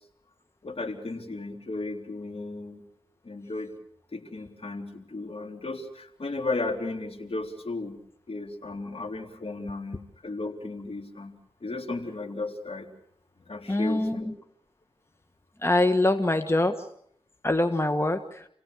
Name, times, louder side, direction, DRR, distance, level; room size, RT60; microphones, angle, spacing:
voice 1, 0.6-2.8 3.2-3.7 4.1-8.0 8.3-11.3 11.6-12.9 13.5-14.3, left 3 dB, 65° left, 4 dB, 3.7 m, -34 dB
voice 2, 13.7-14.3 15.6-16.9 17.4-18.5, left 1 dB, 25° left, 7 dB, 1.6 m, -24 dB
29.0 x 17.5 x 6.7 m, 0.69 s
cardioid pair, 45°, 11 cm